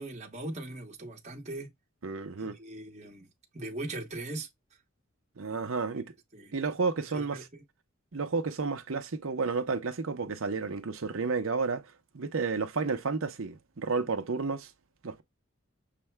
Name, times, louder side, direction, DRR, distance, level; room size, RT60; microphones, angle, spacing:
voice 1, 0.0-1.7 2.4-3.3 3.5-4.5 6.3-6.6 7.1-7.6, right 2 dB, 35° right, 1.1 m, -40 dB
voice 2, 2.0-2.6 5.4-6.1 6.5-7.5 8.1-11.9 12.1-14.7 15.0-15.2, right 4 dB, 75° right, 0.8 m, -31 dB
6.7 x 2.2 x 3.3 m
head